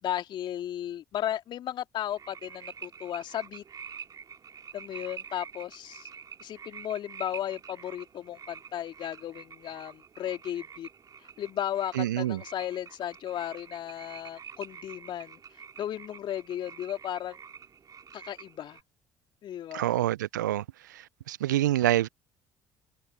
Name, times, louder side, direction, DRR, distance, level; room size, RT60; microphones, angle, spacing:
voice 1, 0.0-3.6 4.7-6.1 6.4-10.9 11.4-15.4 15.8-17.4 18.1-18.8 19.4-19.9, left 11 dB, 55° left, 2.6 m, -35 dB
sound 1, 2.1-18.8, right 7 dB, 40° right, 3.0 m, -47 dB
voice 2, 11.9-12.4 19.7-20.6 20.9-22.1, right 13 dB, 80° right, 0.5 m, -27 dB
figure-of-eight pair, 55°, 10 cm